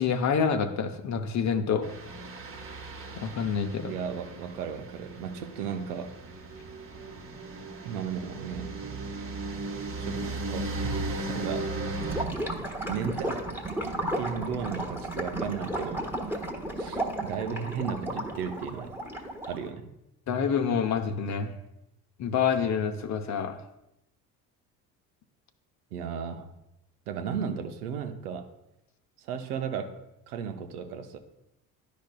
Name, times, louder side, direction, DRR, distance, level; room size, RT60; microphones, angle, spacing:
voice 1, 0.0-1.9 3.2-3.9 20.3-21.6 22.2-23.6, left 6 dB, 40° left, 8 dB, 0.7 m, -27 dB
sound 1, 1.8-12.2, right 2 dB, 30° right, 1.1 m, -36 dB
voice 2, 3.9-6.2 7.8-8.7 10.0-10.7 11.0-11.8 12.9-13.3 14.1-16.1 16.8-18.9 19.5-19.9 25.9-26.5 27.1-28.5 29.2-31.2, right 7 dB, 85° right, 7 dB, 0.7 m, -35 dB
Gurgling / Liquid, 11.9-19.7, right 1 dB, 5° right, 1.2 m, -33 dB
10.5 x 5.1 x 2.2 m, 0.88 s
hypercardioid pair, 65°, 44 cm